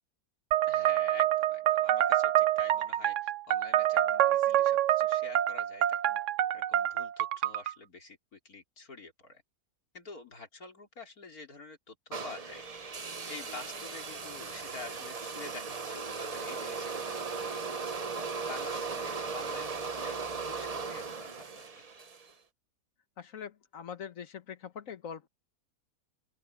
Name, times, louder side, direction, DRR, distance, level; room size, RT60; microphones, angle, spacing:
sound 1, 0.5-7.7, right 12 dB, 65° right, 0.9 m, -27 dB
voice 1, 0.7-6.2 6.5-9.4 9.9-12.6 13.3-17.8 18.4-21.6, left 3 dB, 90° left, 4.2 m, -48 dB
sound 2, 12.1-22.3, right 4 dB, 30° right, 0.9 m, -37 dB
voice 2, 23.2-25.3, left 7 dB, 65° left, 1.5 m, -43 dB
open air
omnidirectional pair, 1.5 m